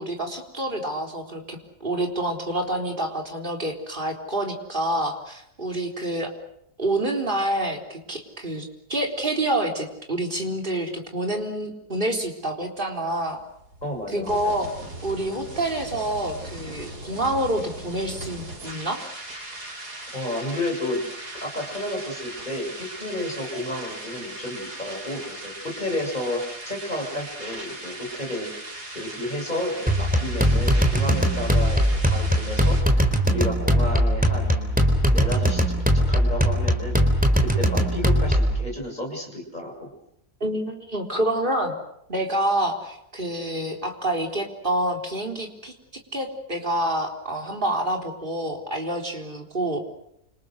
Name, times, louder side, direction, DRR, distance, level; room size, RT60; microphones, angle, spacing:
voice 1, 0.0-6.3 6.8-13.4 14.1-14.7 15.0-19.0 40.4-41.7 42.1-45.7 46.1-49.8, right 1 dB, 30° right, 2 dB, 4.2 m, -27 dB
sound 1, 13.1-32.8, right 1 dB, 85° right, 6.0 m, -39 dB
voice 2, 13.8-14.6 20.1-21.0 21.4-28.5 28.9-34.8 35.1-37.0 37.4-39.9, left 1 dB, 25° left, 1 dB, 7.3 m, -31 dB
sound 2, 29.9-38.6, equal, 5° right, 3.8 m, -20 dB
29.5 x 27.5 x 6.5 m, 0.77 s
omnidirectional pair, 1.6 m